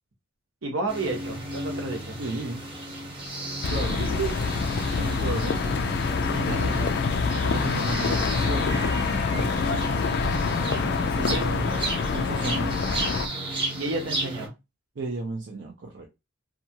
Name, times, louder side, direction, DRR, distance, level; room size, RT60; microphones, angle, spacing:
voice 1, 0.6-2.2 4.0-4.3 6.2-7.0 9.9-11.4 13.7-14.5, right 3 dB, 75° right, 0.9 m, -32 dB
sound 1, 0.9-14.5, right 1 dB, 25° right, 0.9 m, -34 dB
voice 2, 2.1-2.7 3.7-4.0 4.9-5.6 6.5-6.9 7.3-8.8 9.3-9.7 11.0-11.6 12.1-12.8 15.0-16.1, right 2 dB, 60° right, 0.5 m, -34 dB
sound 2, 3.6-13.3, left 4 dB, 50° left, 0.3 m, -26 dB
2.8 x 2.3 x 2.7 m
head